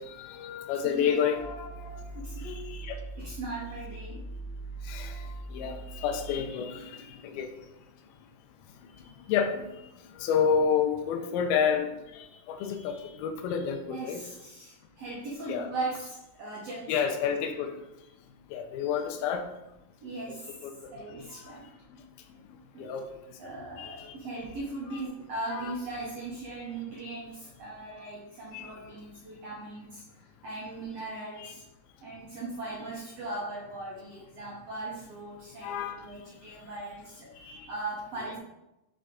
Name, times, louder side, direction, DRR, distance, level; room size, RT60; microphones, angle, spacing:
voice 1, 0.0-2.1 2.4-3.0 4.9-5.2 5.5-7.5 9.3-9.7 10.2-14.2 15.5-15.7 16.9-17.7 18.5-19.4 20.6-20.8 22.8-23.0 23.8-24.1 25.5-25.7 28.5-28.6 35.6-36.0 37.5-37.7, left 7 dB, 80° left, 6 dB, 2.5 m, -30 dB
sound 1, 1.3-6.3, right 3 dB, 40° right, 1.1 m, -41 dB
voice 2, 2.1-2.7 3.2-4.3 13.9-17.0 20.0-20.5 20.9-21.6 22.7-22.9 23.4-30.0 30.4-31.6 32.0-37.4 37.7-38.4, right 2 dB, 85° right, -5 dB, 1.4 m, -39 dB
6.6 x 5.8 x 3.8 m, 0.91 s
omnidirectional pair, 4.7 m